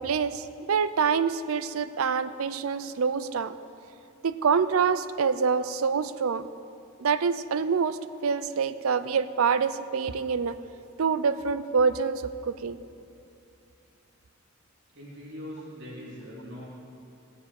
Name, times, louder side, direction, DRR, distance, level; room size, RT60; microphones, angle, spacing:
voice 1, 0.0-3.5 4.2-6.5 7.0-10.6 11.0-12.8, right 6 dB, 90° right, 13 dB, 0.5 m, -26 dB
voice 2, 14.9-16.6, equal, 55° right, -6 dB, 3.3 m, -41 dB
18.0 x 7.4 x 6.5 m, 2.6 s
head